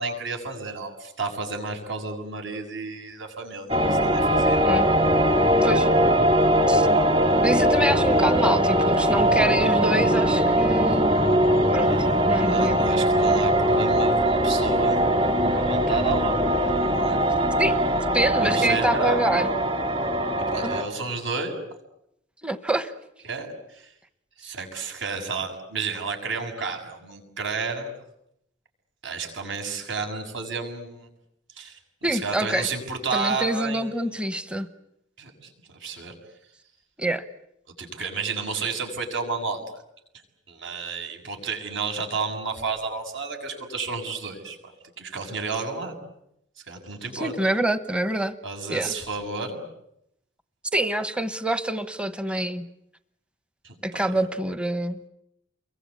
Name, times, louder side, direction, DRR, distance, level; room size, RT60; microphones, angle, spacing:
voice 1, 0.0-4.6 11.8-16.4 16.7-17.2 18.4-19.3 20.5-21.5 23.2-23.5 23.7-23.9 24.4-27.9 29.0-31.1 31.6-31.8 32.0-33.9 35.2-35.5 35.8-36.1 37.8-39.8 40.5-44.6 45.0-46.0 46.7-47.3 48.4-49.6 53.6-54.3, right 4 dB, 65° right, 4 dB, 6.9 m, -31 dB
sound 1, 3.7-20.8, equal, 30° right, 3.3 m, -21 dB
voice 2, 7.4-11.3 11.7-11.9 12.3-12.8 17.6-17.8 18.1-19.5 20.6-20.8 22.4-22.9 32.0-32.7 33.1-34.7 37.0-37.2 47.1-48.3 48.7-48.9 50.7-52.7 53.8-55.0, right 1 dB, 5° right, 11 dB, 1.0 m, -26 dB
29.5 x 23.0 x 8.5 m, 0.80 s
head